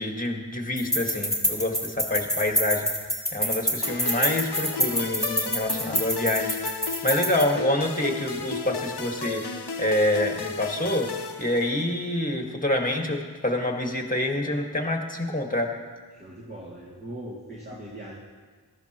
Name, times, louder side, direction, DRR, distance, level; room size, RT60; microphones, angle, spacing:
voice 1, 0.0-2.9 3.3-6.6 7.0-11.1 11.4-15.7, left 1 dB, 20° left, 2 dB, 1.8 m, -27 dB
sound 1, 0.8-7.4, equal, ahead, 2.7 m, -27 dB
sound 2, 3.8-12.1, left 5 dB, 80° left, 0.9 m, -34 dB
voice 2, 16.1-18.1, right 1 dB, 25° right, -6 dB, 2.5 m, -40 dB
18.0 x 14.0 x 3.0 m, 1.5 s
wide cardioid pair, 40°, 40 cm